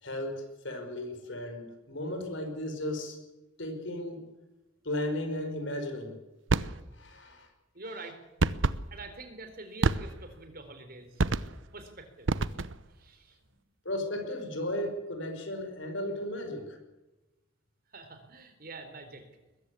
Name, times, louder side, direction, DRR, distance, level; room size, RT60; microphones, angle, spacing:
voice 1, 0.0-3.2 3.6-4.3 4.8-6.2 6.9-7.5 13.9-16.8, left 1 dB, 60° left, 5 dB, 5.4 m, -35 dB
sound 1, 6.5-6.8 8.4-8.8 9.8-10.3 11.2-11.7 12.3-12.9, right 3 dB, 65° right, 0.8 m, -28 dB
voice 2, 7.7-8.2 8.6-12.3 12.9-13.6 17.9-19.2, right 2 dB, 45° right, 7 dB, 3.9 m, -46 dB
21.5 x 15.0 x 8.4 m, 1.1 s
head